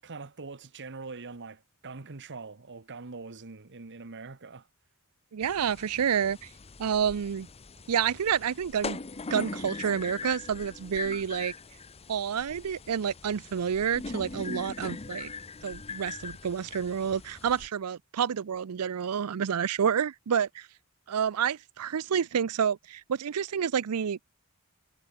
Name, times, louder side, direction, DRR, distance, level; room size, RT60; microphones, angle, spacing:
voice 1, 0.0-4.7, right 4 dB, 55° right, 1.3 m, -43 dB
voice 2, 5.3-6.5 6.8-7.5 7.9-9.0 9.3-11.5 12.1-15.3 15.6-20.7 21.1-24.2, right 7 dB, 85° right, 0.5 m, -29 dB
sound 1, 5.4-17.7, left 4 dB, 25° left, 0.8 m, -41 dB
head